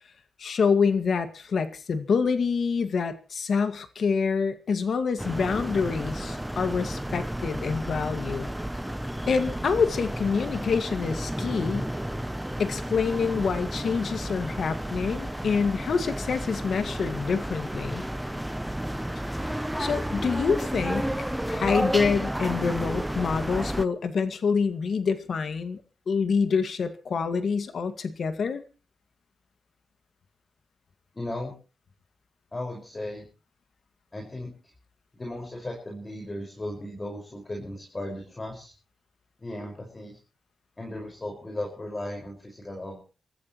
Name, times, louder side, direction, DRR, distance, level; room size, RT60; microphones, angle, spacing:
voice 1, 0.4-8.5 9.3-11.9 12.6-18.0 19.4-19.5 19.8-21.1 21.5-25.8 26.1-28.6, left 5 dB, 60° left, 9 dB, 1.9 m, -26 dB
sound 1, 5.2-23.9, right 1 dB, 5° right, 0.7 m, -32 dB
voice 2, 31.1-31.5 32.5-33.2 34.1-34.5 35.2-38.7 39.4-40.2 40.8-43.0, left 1 dB, 25° left, 0 dB, 5.3 m, -36 dB
29.0 x 14.0 x 3.1 m, 0.36 s
cardioid pair, 100°, 0 cm